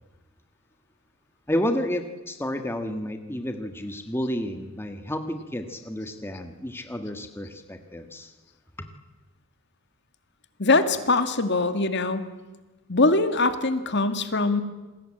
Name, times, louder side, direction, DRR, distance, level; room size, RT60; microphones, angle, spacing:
voice 1, 1.5-8.3 8.8-8.9, equal, 10° left, 6 dB, 1.5 m, -31 dB
voice 2, 10.6-12.2 12.9-14.6, left 3 dB, 50° left, 9 dB, 2.0 m, -22 dB
28.0 x 21.0 x 8.8 m, 1.2 s
head